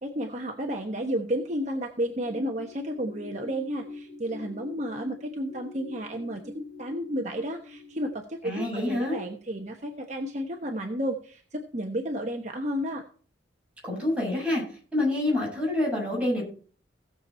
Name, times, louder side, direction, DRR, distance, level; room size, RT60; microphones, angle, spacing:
voice 1, 0.0-13.0, equal, 40° right, 2 dB, 1.1 m, -32 dB
sound 1, 2.2-8.1, left 3 dB, 15° left, 6.3 m, -43 dB
voice 2, 8.4-9.2 13.9-14.6 14.9-16.4, left 1 dB, 5° right, -5 dB, 8.0 m, -27 dB
17.0 x 7.2 x 4.3 m, 0.42 s
head